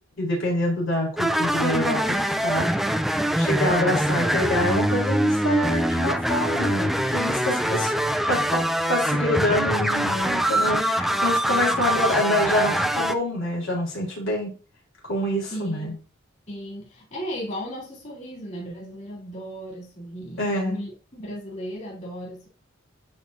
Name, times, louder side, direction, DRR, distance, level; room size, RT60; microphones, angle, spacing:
voice 1, 0.2-2.9 3.4-8.0 8.3-8.6 8.9-14.5 15.1-15.9 20.4-20.8, left 1 dB, 70° left, 4.0 m, -26 dB
sound 1, 1.2-13.1, equal, ahead, 0.4 m, -24 dB
voice 2, 15.5-16.0 16.5-22.5, equal, 35° left, 3.9 m, -36 dB
11.0 x 4.7 x 2.8 m
head